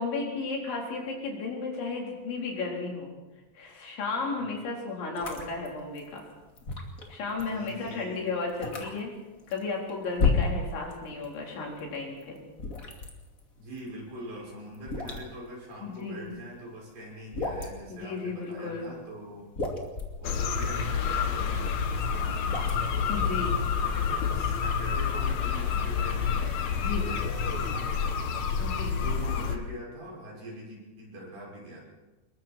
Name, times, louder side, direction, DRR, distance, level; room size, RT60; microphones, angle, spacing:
voice 1, 0.0-3.1 3.5-6.2 7.1-9.1 9.5-12.4 15.8-16.4 17.9-18.9 23.1-23.7 26.8-27.1 28.6-29.0, left 4 dB, 90° left, -1 dB, 6.5 m, -34 dB
voice 2, 4.3-4.7 7.5-8.3 13.6-19.5 20.2-28.4 28.9-31.9, right 1 dB, 50° right, -3 dB, 7.7 m, -44 dB
sound 1, 5.2-11.3 11.6-16.6 17.0-17.9 18.5-19.0 19.3-23.1, left 4 dB, 25° left, 2.1 m, -33 dB
sound 2, 20.2-29.6, left 6 dB, 65° left, 1.8 m, -28 dB
26.5 x 22.0 x 4.5 m, 1.1 s
omnidirectional pair, 5.1 m